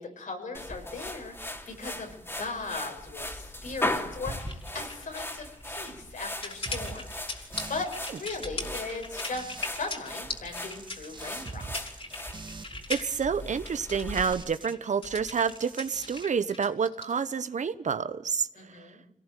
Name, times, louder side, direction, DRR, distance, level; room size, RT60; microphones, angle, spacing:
voice 1, 0.0-7.1 7.3-11.7 18.6-19.0, left 3 dB, 85° left, 3 dB, 5.9 m, -38 dB
sound 1, 0.5-14.3, left 1 dB, 20° left, 3.1 m, -38 dB
sound 2, 4.4-17.1, left 2 dB, 45° left, 4.0 m, -39 dB
sound 3, 6.6-9.9 10.2-14.7 15.0-16.2, right 3 dB, 35° right, 1.9 m, -45 dB
voice 2, 12.9-18.9, right 6 dB, 70° right, 13 dB, 1.2 m, -29 dB
26.0 x 18.5 x 9.3 m, 0.76 s
wide cardioid pair, 100°, 13 cm